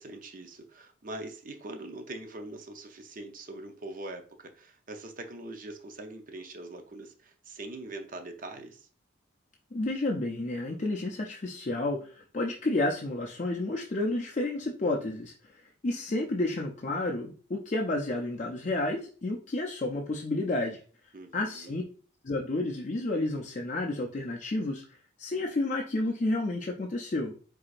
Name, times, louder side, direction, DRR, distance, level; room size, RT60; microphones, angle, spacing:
voice 1, 0.0-8.9 21.1-21.8, right 2 dB, 45° right, 0.6 m, -43 dB
voice 2, 9.7-15.3 15.8-20.8 21.3-21.8 22.2-24.8 25.2-27.3, left 2 dB, 35° left, 0.5 m, -31 dB
4.8 x 3.8 x 2.5 m
head